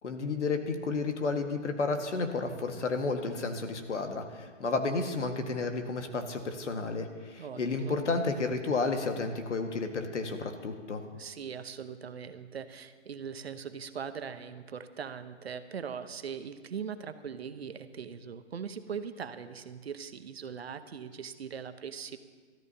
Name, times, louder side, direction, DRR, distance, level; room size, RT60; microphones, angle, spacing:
voice 1, 0.0-11.0, left 3 dB, 75° left, 5 dB, 1.8 m, -32 dB
voice 2, 7.4-8.0 11.1-22.2, right 7 dB, 60° right, 10 dB, 0.9 m, -40 dB
22.5 x 13.5 x 2.8 m, 1.5 s
hypercardioid pair, 170°, 36 cm